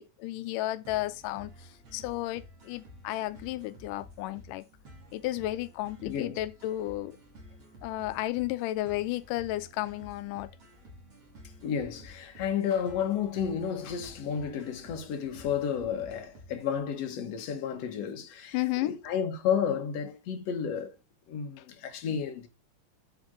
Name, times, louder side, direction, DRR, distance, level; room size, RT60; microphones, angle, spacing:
voice 1, 0.0-4.6 5.1-7.2 7.8-10.5 18.5-18.9 21.6-21.7, left 16 dB, 90° left, 2.2 m, -33 dB
sound 1, 0.9-16.8, equal, 50° right, 4.1 m, -52 dB
voice 2, 6.0-6.4 11.6-21.0 21.3-22.5, left 8 dB, 60° left, 2.5 m, -32 dB
8.1 x 7.9 x 3.9 m
omnidirectional pair, 3.7 m